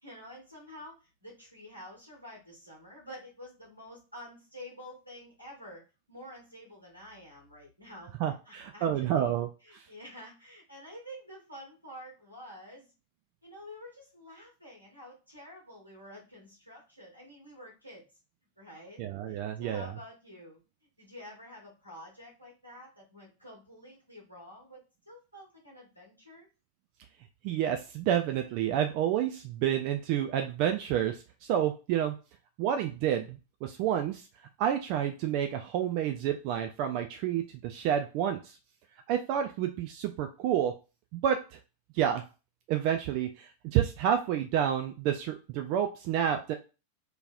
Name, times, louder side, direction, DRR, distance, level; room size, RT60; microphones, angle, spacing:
voice 1, 0.0-5.8 6.1-8.1 8.4-9.3 9.6-12.9 13.4-18.1 18.6-19.0 19.3-20.6 21.0-24.8 25.1-26.5, equal, 90° right, -3 dB, 1.5 m, -49 dB
voice 2, 8.2-9.5 9.8-9.9 19.0-19.9 27.4-32.2 32.6-34.3 34.6-38.6 39.1-40.7 41.1-41.4 41.9-42.2 42.7-46.5, right 10 dB, 45° right, 5 dB, 0.3 m, -29 dB
3.0 x 2.8 x 2.4 m, 0.31 s
figure-of-eight pair, 90°, 0 cm